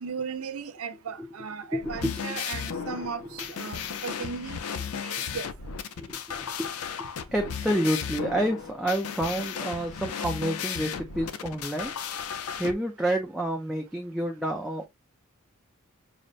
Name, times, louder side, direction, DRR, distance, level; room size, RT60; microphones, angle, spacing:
voice 1, 0.0-4.6 5.0-5.5, right 5 dB, 75° right, 0.5 m, -36 dB
voice 2, 1.7-2.4 2.7-3.5 4.2-4.3 6.0-6.7 7.0-11.9 12.4-14.9, right 1 dB, ahead, 0.4 m, -30 dB
sound 1, 1.8-12.7, left 7 dB, 85° left, 0.5 m, -35 dB
6.3 x 2.1 x 2.4 m
head